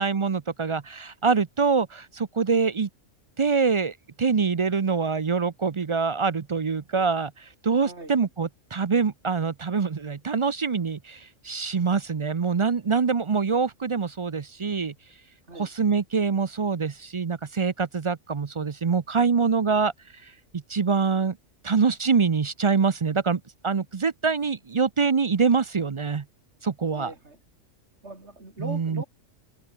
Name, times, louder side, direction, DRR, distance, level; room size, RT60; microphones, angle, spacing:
voice 1, 0.0-2.9 3.4-14.9 15.6-19.9 20.5-21.4 21.6-26.2 26.6-27.1 28.6-29.0, right 5 dB, 40° right, 0.4 m, -25 dB
voice 2, 7.8-8.1 15.5-15.7 26.9-27.4 28.0-29.0, right 2 dB, 55° right, 5.5 m, -40 dB
omnidirectional pair, 1.3 m